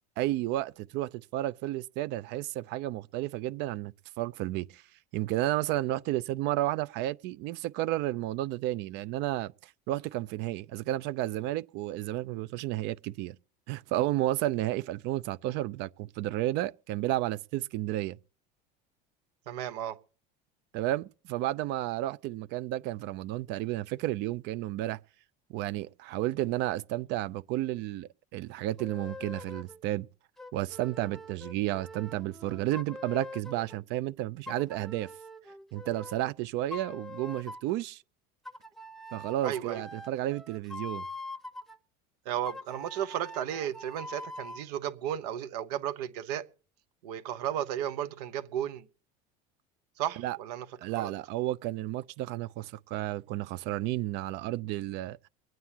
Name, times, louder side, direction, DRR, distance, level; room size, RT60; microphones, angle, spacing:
voice 1, 0.2-4.8 5.1-9.5 9.9-13.4 13.7-18.2 20.7-25.0 25.5-30.1 30.5-35.1 35.7-38.0 39.1-41.0 50.2-50.4 50.8-55.2, right 15 dB, 60° right, 0.5 m, -32 dB
voice 2, 19.5-20.0 39.4-39.9 42.2-46.4 47.0-48.9 50.0-50.7 50.9-51.1, right 10 dB, 90° right, 1.0 m, -34 dB
sound 1, 28.8-29.8 30.4-33.8 34.5-36.3 36.7-37.8 38.5-41.8 42.5-44.7, left 2 dB, ahead, 0.8 m, -44 dB
24.0 x 9.3 x 2.9 m
supercardioid pair, 120°, 20 cm